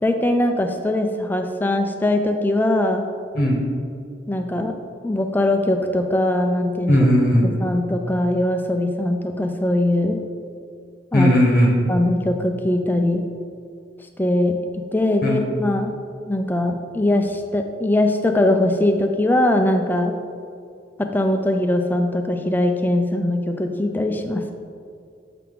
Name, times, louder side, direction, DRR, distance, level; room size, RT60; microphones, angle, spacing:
voice 1, 0.0-3.1 4.3-4.7 5.0-6.9 7.6-10.2 11.1-11.3 11.9-13.2 14.2-14.5 14.9-15.9 16.3-20.1 21.1-24.5, left 1 dB, 10° left, 5 dB, 0.4 m, -21 dB
voice 2, 6.9-7.5 11.1-11.9 15.2-15.4, equal, 50° left, -2 dB, 1.0 m, -17 dB
7.6 x 5.8 x 3.6 m, 2.3 s
head